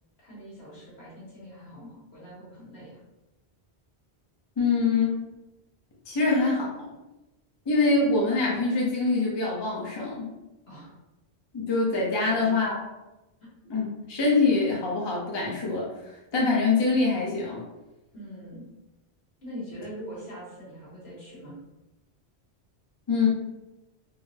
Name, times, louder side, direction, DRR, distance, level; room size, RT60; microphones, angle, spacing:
voice 1, 0.2-3.0 10.7-10.9 12.2-12.7 18.1-18.6 19.4-21.5, equal, 75° left, -7 dB, 1.6 m, -43 dB
voice 2, 4.6-5.2 6.1-6.9 7.7-10.3 11.5-12.7 13.7-17.6 23.1-23.3, left 3 dB, 30° left, -4 dB, 0.6 m, -24 dB
3.8 x 2.0 x 2.7 m, 1.0 s
omnidirectional pair, 1.1 m